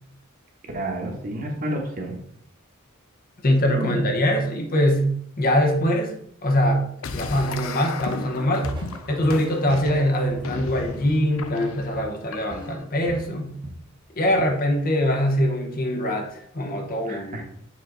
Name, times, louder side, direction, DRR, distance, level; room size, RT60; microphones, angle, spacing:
voice 1, 0.7-2.2 3.8-4.1 17.1-17.4, right 1 dB, 40° right, 1 dB, 1.2 m, -30 dB
voice 2, 3.4-6.9 7.1-8.7 9.1-13.5 14.2-17.4, equal, 45° left, 3 dB, 0.9 m, -23 dB
sound 1, 7.0-12.8, left 4 dB, 70° left, 0.5 m, -36 dB
Walk footsteps, 8.6-11.7 11.9-12.2 12.5-13.9 14.2-14.6, equal, 20° right, 1.0 m, -40 dB
7.1 x 3.9 x 3.9 m, 0.69 s
head